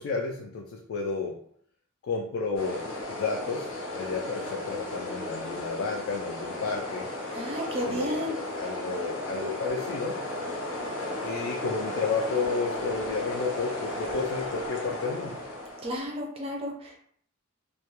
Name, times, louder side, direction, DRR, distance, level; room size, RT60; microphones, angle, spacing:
voice 1, 0.0-1.4 2.0-7.1 7.8-8.2 8.6-10.2 11.2-15.4, left 4 dB, 65° left, -1 dB, 0.3 m, -32 dB
sound 1, 2.6-16.0, left 1 dB, 85° left, 0.7 m, -35 dB
voice 2, 7.3-8.4 15.8-17.0, equal, 25° right, 0 dB, 0.4 m, -32 dB
2.2 x 2.1 x 2.9 m, 0.63 s
head